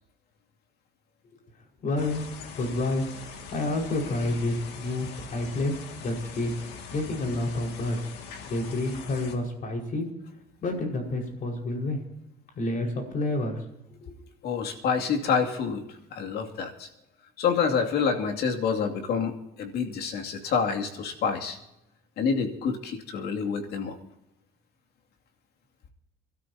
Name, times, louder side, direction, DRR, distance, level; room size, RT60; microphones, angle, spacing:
voice 1, 1.8-2.2 2.5-5.7 6.0-6.5 6.9-8.0 8.5-10.1 10.6-12.0 12.6-13.6 14.0-14.1, left 2 dB, 55° left, 1 dB, 5.2 m, -29 dB
sound 1, 2.0-9.4, left 6 dB, 90° left, 2.2 m, -42 dB
voice 2, 14.4-16.9 17.4-21.6 22.2-24.0, left 6 dB, 75° left, 3 dB, 2.6 m, -28 dB
27.5 x 13.0 x 2.9 m, 0.87 s
cardioid pair, 110°, 17 cm